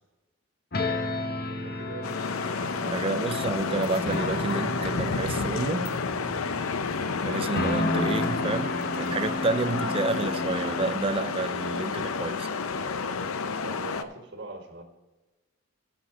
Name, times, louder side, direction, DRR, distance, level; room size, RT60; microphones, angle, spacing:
sound 1, 0.7-10.9, left 2 dB, 45° left, 1.2 m, -33 dB
voice 1, 1.5-2.4 6.5-6.9 13.6-14.8, right 2 dB, 55° right, 4 dB, 1.6 m, -42 dB
sound 2, 2.0-14.0, left 5 dB, 85° left, 0.6 m, -30 dB
voice 2, 2.8-5.9 7.2-12.5, right 3 dB, 25° right, 13 dB, 0.4 m, -30 dB
Wind instrument woodwind instrument, 3.5-9.2, equal, 25° left, 2.4 m, -46 dB
14.5 x 5.9 x 5.0 m, 1.1 s
head